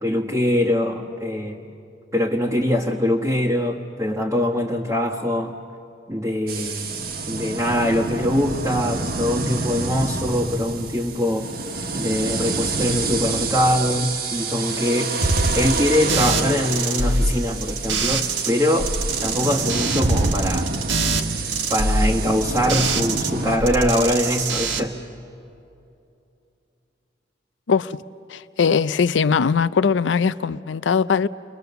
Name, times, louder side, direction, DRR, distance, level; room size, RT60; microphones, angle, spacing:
voice 1, 0.0-1.6 2.1-5.5 6.1-11.5 11.9-15.1 15.5-18.9 19.2-20.7 21.7-24.9, left 1 dB, 15° right, 1.2 m, -23 dB
sound 1, 6.5-23.6, right 3 dB, 50° right, 1.3 m, -28 dB
sound 2, 15.2-18.5 18.8-23.3 23.6-24.8, right 3 dB, 80° right, 1.6 m, -24 dB
voice 2, 28.3-31.3, left 6 dB, 80° left, 0.5 m, -20 dB
29.5 x 23.0 x 6.9 m
head